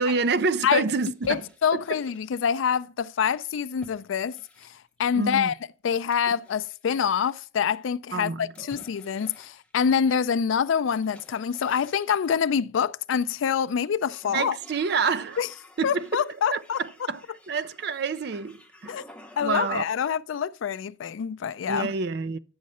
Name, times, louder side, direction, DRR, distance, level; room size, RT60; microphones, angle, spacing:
voice 1, 0.0-1.4 1.7-1.8 5.1-5.5 8.1-8.5 14.3-15.4 15.8-16.1 16.5-19.0 19.4-19.9 21.7-22.4, right 4 dB, 55° right, 0.5 m, -27 dB
sound 1, 1.1-2.9 3.8-5.1 6.1-7.5 8.5-10.2 10.9-12.4 13.1-13.7 14.0-20.0, left 1 dB, 5° left, 0.8 m, -52 dB
voice 2, 1.3-4.7 5.0-5.6 5.8-14.6 15.4-15.5 15.8-16.8 18.9-19.0 19.4-21.9, left 7 dB, 75° left, 0.4 m, -26 dB
9.4 x 6.4 x 4.2 m
head